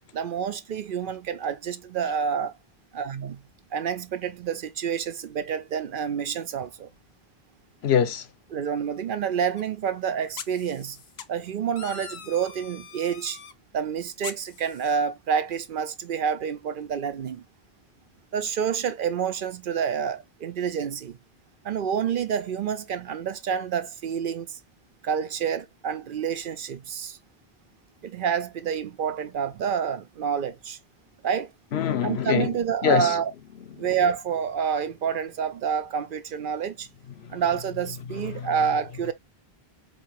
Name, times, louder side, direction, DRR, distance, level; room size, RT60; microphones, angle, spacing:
voice 1, 0.1-2.5 2.9-3.4 3.7-6.9 8.5-11.0 11.3-13.4 13.7-17.4 18.3-21.2 21.6-24.6 25.0-27.2 28.0-30.8 31.2-31.5 32.0-33.3 33.8-36.9 37.3-39.1, right 7 dB, 60° right, 0.7 m, -28 dB
voice 2, 7.8-8.3 31.7-32.5 32.8-33.2 33.8-33.9 37.2-37.4 38.3-38.5, left 8 dB, 85° left, 1.0 m, -24 dB
sound 1, 9.6-9.7 10.4-11.2 11.8-13.5 14.2-14.9, left 7 dB, 55° left, 0.7 m, -42 dB
4.6 x 2.8 x 3.0 m
omnidirectional pair, 1.0 m